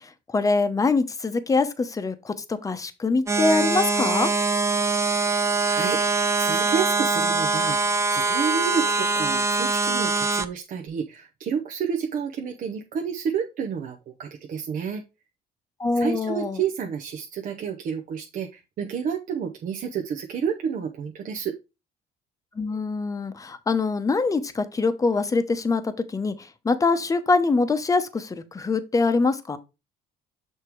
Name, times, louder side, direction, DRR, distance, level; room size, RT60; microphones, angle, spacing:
voice 1, 0.3-4.3 15.8-16.6 22.6-26.3 26.6-29.6, left 3 dB, 20° left, 0.8 m, -24 dB
sound 1, 3.3-10.5, right 3 dB, 15° right, 0.6 m, -23 dB
voice 2, 5.6-7.8 8.1-15.0 15.9-21.5, right 7 dB, 55° right, 0.8 m, -30 dB
6.7 x 3.6 x 4.5 m
cardioid pair, 110°, 17 cm